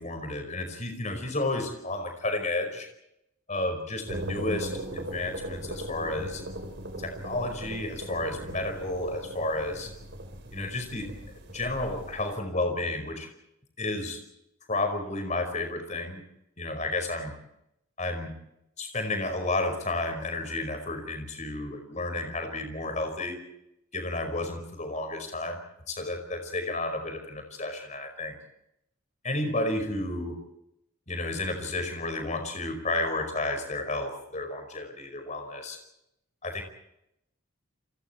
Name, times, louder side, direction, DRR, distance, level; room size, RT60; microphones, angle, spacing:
voice 1, 0.0-2.9 3.5-6.4 7.0-9.9 10.5-11.1 11.5-13.3 13.8-14.2 14.7-16.2 16.6-17.4 18.0-18.4 18.8-23.4 23.9-25.6 25.9-28.4 29.2-30.4 31.1-35.8 36.4-36.6, left 2 dB, 35° left, 6 dB, 5.0 m, -31 dB
sound 1, 4.1-12.4, right 1 dB, 50° right, 4.0 m, -39 dB
29.5 x 25.0 x 4.5 m, 0.82 s
head